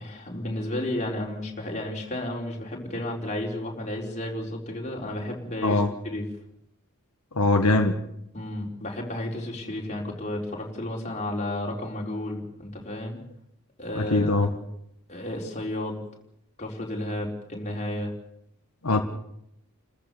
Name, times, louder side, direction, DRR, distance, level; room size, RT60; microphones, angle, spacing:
voice 1, 0.0-6.3 8.3-13.2 13.8-14.6 15.1-16.0 16.6-18.1, left 1 dB, 30° left, -1 dB, 4.2 m, -32 dB
voice 2, 7.4-7.9 14.0-14.5 18.8-19.0, left 2 dB, 85° left, 4 dB, 1.8 m, -21 dB
30.0 x 14.5 x 6.9 m, 0.76 s
head